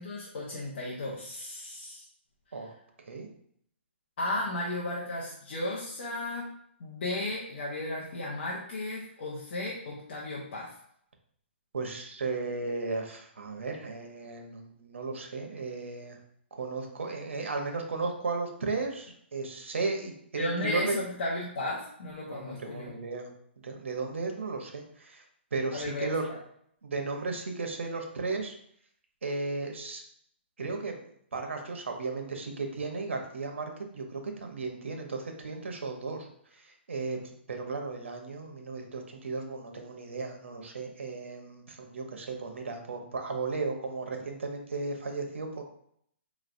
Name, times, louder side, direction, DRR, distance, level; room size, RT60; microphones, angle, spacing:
voice 1, 0.0-2.0 4.2-6.5 6.8-10.7 20.4-22.9 25.7-26.4, left 1 dB, 50° left, -4 dB, 0.8 m, -34 dB
voice 2, 11.7-16.2 16.5-21.0 22.3-23.3 23.6-25.2 25.5-26.2 26.8-28.5 29.2-30.0 30.6-31.1 31.3-36.3 36.9-37.2 37.5-45.6, right 3 dB, 90° right, 3 dB, 0.8 m, -35 dB
4.5 x 3.1 x 2.6 m, 0.69 s
hypercardioid pair, 160°, 7 cm